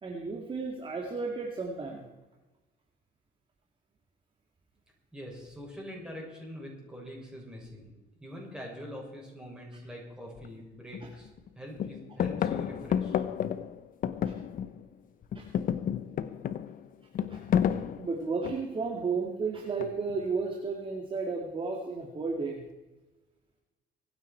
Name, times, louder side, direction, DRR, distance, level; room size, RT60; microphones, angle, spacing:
voice 1, 0.0-2.0 11.0-11.1 14.2-14.3 15.4-15.5 17.3-17.4 18.0-22.6, right 4 dB, 30° right, 0 dB, 2.2 m, -33 dB
voice 2, 5.1-7.9 8.2-11.3 11.5-13.2, equal, 5° right, -3 dB, 6.8 m, -44 dB
sound 1, 10.4-10.5 10.9-11.5 11.8-14.9 15.2-18.8 19.8-20.3, left 9 dB, 55° left, 0.9 m, -31 dB
24.0 x 9.7 x 4.5 m, 1.1 s
cardioid pair, 110°, 17 cm